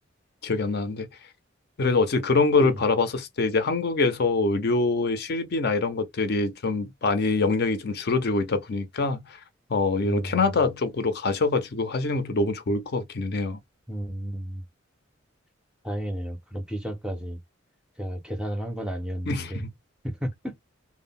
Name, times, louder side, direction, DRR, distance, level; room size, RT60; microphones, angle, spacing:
voice 1, 0.4-1.1 1.8-9.4 9.7-13.6 19.3-19.7, left 3 dB, 55° left, 0.5 m, -24 dB
voice 2, 10.0-10.6 13.9-14.6 15.8-17.4 18.0-19.6 20.0-20.5, equal, 5° right, 0.5 m, -33 dB
2.1 x 2.0 x 3.5 m
head